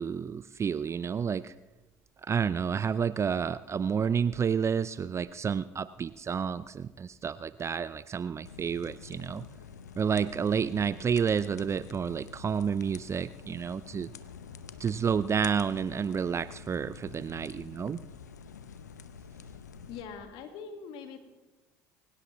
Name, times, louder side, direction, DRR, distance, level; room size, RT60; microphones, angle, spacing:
voice 1, 0.0-1.5 2.2-9.4 10.0-14.1 14.8-18.0, right 7 dB, 30° right, 16 dB, 0.5 m, -30 dB
sound 1, 8.4-20.0, left 6 dB, 90° left, 0.7 m, -48 dB
voice 2, 19.9-21.2, left 6 dB, 65° left, 6 dB, 1.8 m, -42 dB
24.0 x 16.5 x 3.1 m, 1.1 s
hypercardioid pair, 65°, 9 cm